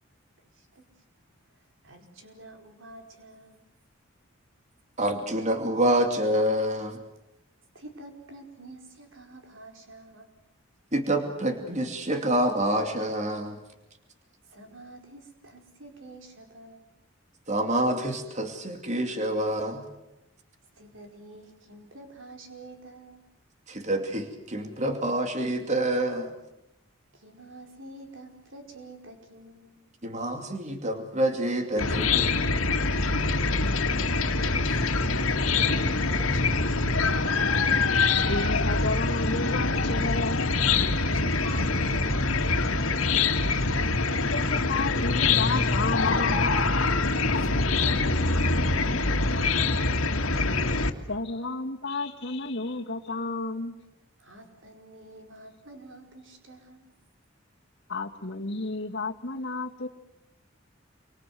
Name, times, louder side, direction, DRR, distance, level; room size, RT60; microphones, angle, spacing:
voice 1, 1.8-3.7 7.7-10.3 14.4-16.8 20.7-23.2 27.1-29.9 34.6-36.9 40.9-43.2 47.4-50.0 54.2-56.9, right 2 dB, 65° right, 4 dB, 5.0 m, -47 dB
voice 2, 5.0-7.0 10.9-13.6 17.5-19.8 23.7-26.3 30.0-32.3, right 1 dB, 35° right, 5 dB, 2.6 m, -27 dB
Chicken rooster / Cricket, 31.8-50.9, left 3 dB, 90° left, 2.1 m, -24 dB
voice 3, 38.1-40.4 44.3-46.7 51.1-53.7 57.9-59.9, left 3 dB, 55° left, -1 dB, 2.5 m, -32 dB
28.0 x 25.0 x 7.9 m, 0.92 s
head